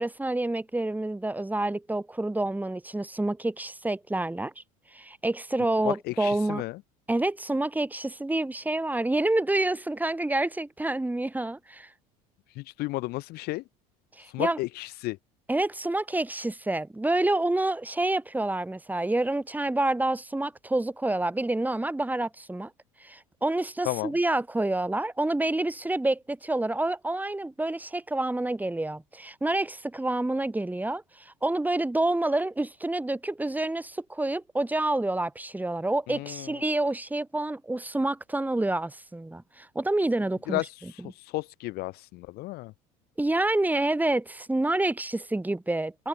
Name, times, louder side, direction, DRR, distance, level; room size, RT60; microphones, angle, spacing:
voice 1, 0.0-4.6 4.9-6.6 7.1-11.9 14.1-14.6 15.5-22.7 23.0-40.6 43.2-46.1, right 2 dB, 10° right, 4.5 m, -28 dB
voice 2, 5.8-6.8 12.5-13.6 14.2-15.2 23.8-24.1 36.1-36.6 40.5-42.7, left 20 dB, 55° left, 0.9 m, -33 dB
hypercardioid pair, 70°, 19 cm